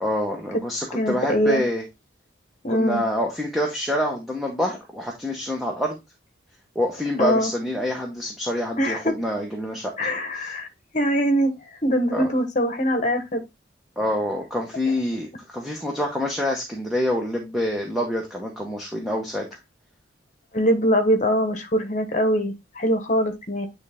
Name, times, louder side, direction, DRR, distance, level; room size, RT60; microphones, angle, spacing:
voice 1, 0.0-1.8 2.7-6.0 6.7-10.1 10.4-10.5 12.1-12.3 14.0-19.5, left 1 dB, ahead, 0.9 m, -26 dB
voice 2, 0.9-1.6 2.6-3.0 7.2-7.5 8.8-9.1 10.0-10.7 10.9-11.5 11.8-13.4 20.5-23.7, equal, 40° left, 1.2 m, -22 dB
9.2 x 3.3 x 3.6 m
head